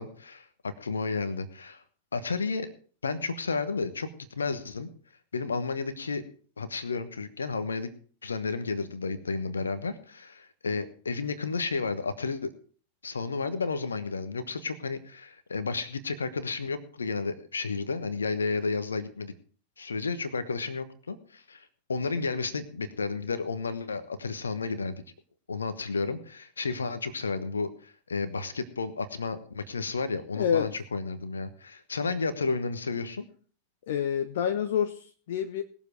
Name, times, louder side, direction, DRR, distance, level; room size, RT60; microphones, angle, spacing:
voice 1, 0.0-1.8 2.1-2.7 3.0-4.1 4.3-4.9 5.3-6.2 6.6-7.9 8.2-12.5 13.0-19.3 19.8-25.0 25.5-33.3, left 4 dB, 75° left, 12 dB, 1.2 m, -32 dB
voice 2, 30.3-30.7 33.9-35.6, left 8 dB, 55° left, 8 dB, 0.8 m, -28 dB
19.5 x 7.3 x 4.8 m, 0.42 s
figure-of-eight pair, 90°, 0 cm